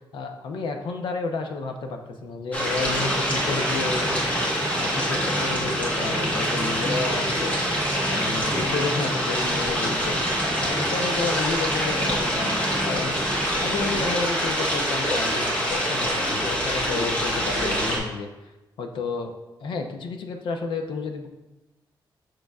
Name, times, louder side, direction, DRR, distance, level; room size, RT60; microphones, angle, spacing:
voice 1, 0.0-7.6 8.0-10.2 10.6-13.1 13.6-18.3 18.8-19.3 19.6-21.3, left 4 dB, 80° left, 4 dB, 0.7 m, -31 dB
sound 1, 2.5-18.0, equal, 15° left, 1.3 m, -25 dB
sound 2, 2.9-14.0, right 1 dB, 35° right, 1.0 m, -35 dB
6.5 x 6.2 x 2.4 m, 1.0 s
wide cardioid pair, 175°, 8 cm